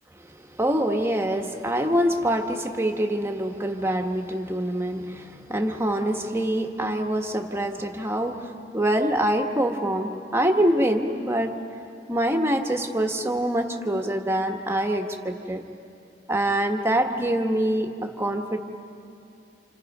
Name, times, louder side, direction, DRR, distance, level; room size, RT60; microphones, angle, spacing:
voice 1, 0.6-11.6 12.1-15.6 16.3-18.6, right 1 dB, 15° right, 4 dB, 1.4 m, -25 dB
30.0 x 27.5 x 5.4 m, 2.6 s
head